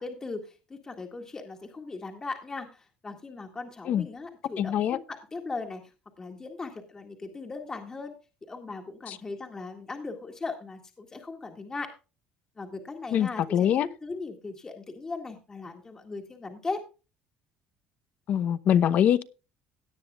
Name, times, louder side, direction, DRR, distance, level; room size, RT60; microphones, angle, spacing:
voice 1, 0.0-8.1 8.4-11.9 12.6-16.8, left 3 dB, 20° left, 1.8 m, -38 dB
voice 2, 4.6-5.0 9.1-9.2 13.1-13.9 18.3-19.2, left 9 dB, 50° left, 0.9 m, -23 dB
17.5 x 10.0 x 2.3 m
cardioid pair, 135°, 3 cm